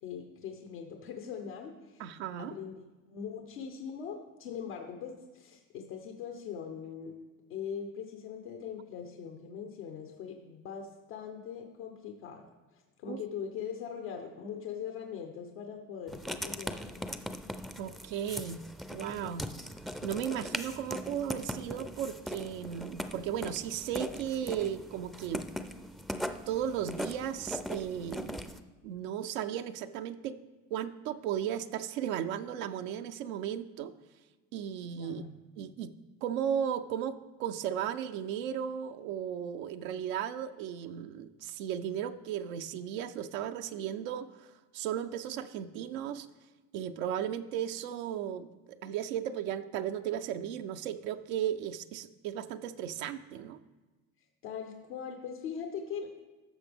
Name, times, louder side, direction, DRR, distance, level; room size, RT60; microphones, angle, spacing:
voice 1, 0.0-2.0 2.4-7.1 7.5-12.5 13.0-17.0 35.0-35.4 54.4-56.2, left 7 dB, 80° left, 2 dB, 1.0 m, -41 dB
voice 2, 2.0-2.5 13.1-13.2 17.8-18.6 18.9-19.5 20.0-25.4 26.5-28.5 28.8-30.4 30.7-33.9 34.5-35.2 35.6-35.9 36.2-46.3 46.7-53.6, right 9 dB, 85° right, 8 dB, 0.6 m, -35 dB
Writing, 16.1-28.6, equal, ahead, 0.4 m, -40 dB
13.5 x 6.1 x 3.5 m, 1.2 s
supercardioid pair, 75°, 40 cm